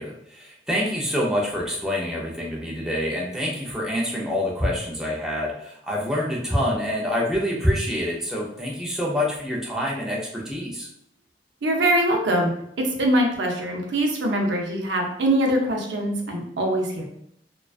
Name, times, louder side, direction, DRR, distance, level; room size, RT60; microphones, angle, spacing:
voice 1, 0.0-10.9, equal, 5° right, -4 dB, 0.4 m, -26 dB
voice 2, 11.6-12.5 12.8-17.0, right 1 dB, 80° right, 1 dB, 0.5 m, -23 dB
2.4 x 2.2 x 2.3 m, 0.73 s
head